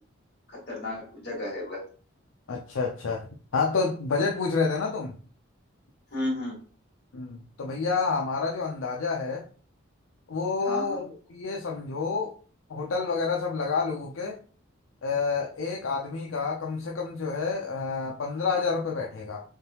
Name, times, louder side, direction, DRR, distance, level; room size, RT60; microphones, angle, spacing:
voice 1, 0.5-1.8 6.1-6.5 10.6-11.0, left 1 dB, 50° left, -4 dB, 1.9 m, -33 dB
voice 2, 2.5-3.3 3.5-5.2 7.1-9.5 10.3-12.4 12.7-14.4 15.0-19.4, left 4 dB, 75° left, 0 dB, 0.5 m, -29 dB
3.8 x 3.6 x 2.8 m, 0.40 s
head